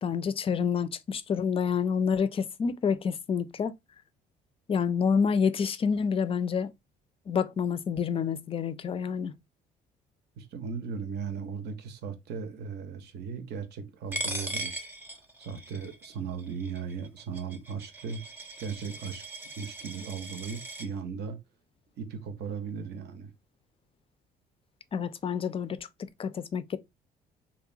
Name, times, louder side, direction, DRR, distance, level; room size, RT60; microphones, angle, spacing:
voice 1, 0.0-3.7 4.7-6.7 7.3-9.4 24.9-25.8 26.2-26.8, left 6 dB, 30° left, 0.4 m, -28 dB
voice 2, 10.4-14.9 15.4-18.2 18.6-19.2 19.6-21.4 22.0-23.3, right 6 dB, 60° right, 0.6 m, -37 dB
Coin (dropping), 14.1-20.9, right 1 dB, 10° right, 0.6 m, -39 dB
2.8 x 2.1 x 2.5 m
hypercardioid pair, 60°, 19 cm